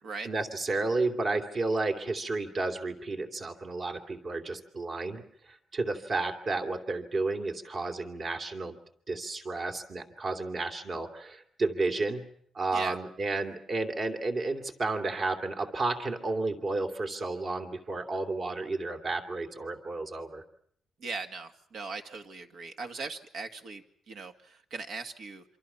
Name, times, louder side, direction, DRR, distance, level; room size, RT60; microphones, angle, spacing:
voice 1, 0.2-8.8 9.1-12.3 12.5-20.4, right 3 dB, 40° right, 5 dB, 2.7 m, -32 dB
voice 2, 21.0-25.4, right 4 dB, 60° right, 6 dB, 2.0 m, -39 dB
27.0 x 25.5 x 5.8 m, 0.63 s
cardioid pair, 140°, 0 cm